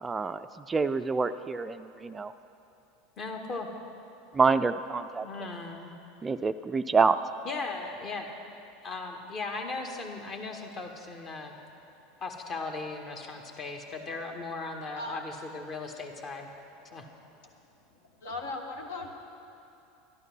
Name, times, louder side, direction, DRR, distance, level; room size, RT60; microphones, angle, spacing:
voice 1, 0.0-2.3 4.3-5.3 6.2-7.2, right 4 dB, 20° right, 11 dB, 0.4 m, -27 dB
voice 2, 3.2-3.7 5.2-5.9 7.4-8.3 8.8-11.5 12.2-16.5 16.9-17.1, left 3 dB, 40° left, 3 dB, 1.6 m, -37 dB
voice 3, 17.9-19.1, left 2 dB, 70° left, 2 dB, 1.6 m, -38 dB
12.0 x 12.0 x 6.1 m, 2.8 s
figure-of-eight pair, 80°, 0 cm